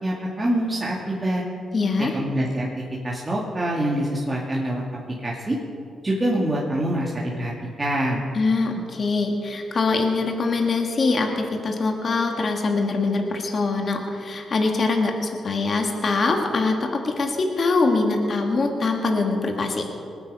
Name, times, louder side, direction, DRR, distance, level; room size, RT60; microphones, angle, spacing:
voice 1, 0.0-1.4 2.1-2.7 3.0-4.8 5.2-5.6 6.0-7.5 7.8-8.2, right 1 dB, 25° right, -4 dB, 2.2 m, -25 dB
voice 2, 1.7-2.1 8.3-19.8, left 3 dB, 50° left, 3 dB, 1.8 m, -23 dB
20.5 x 9.3 x 5.5 m, 2.6 s
cardioid pair, 75°, 0 cm